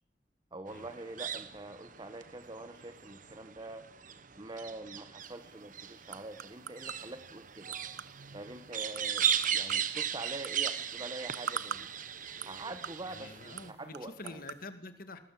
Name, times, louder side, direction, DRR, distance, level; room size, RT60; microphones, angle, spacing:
voice 1, 0.5-3.9 4.4-7.7 8.3-11.9 12.4-14.4, right 2 dB, 25° right, 8 dB, 1.4 m, -45 dB
sound 1, 0.7-13.7, right 8 dB, 50° right, 1.2 m, -37 dB
sound 2, 5.2-14.6, right 7 dB, 70° right, 0.8 m, -46 dB
voice 2, 13.1-15.2, left 2 dB, 55° left, 9 dB, 2.1 m, -47 dB
20.0 x 19.0 x 7.8 m, 0.74 s
head